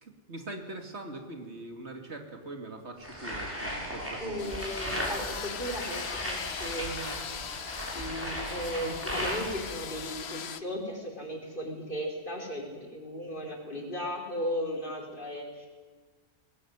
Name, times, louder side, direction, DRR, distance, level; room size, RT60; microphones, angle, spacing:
voice 1, 0.0-4.6, right 2 dB, 65° right, 4 dB, 2.8 m, -42 dB
sound 1, 3.0-9.8, equal, 10° right, 7.0 m, -36 dB
voice 2, 4.2-7.2 7.9-15.7, equal, 45° left, 0 dB, 5.1 m, -36 dB
sound 2, 4.4-10.6, left 7 dB, 65° left, 1.2 m, -40 dB
21.0 x 20.5 x 9.6 m, 1.4 s
omnidirectional pair, 1.2 m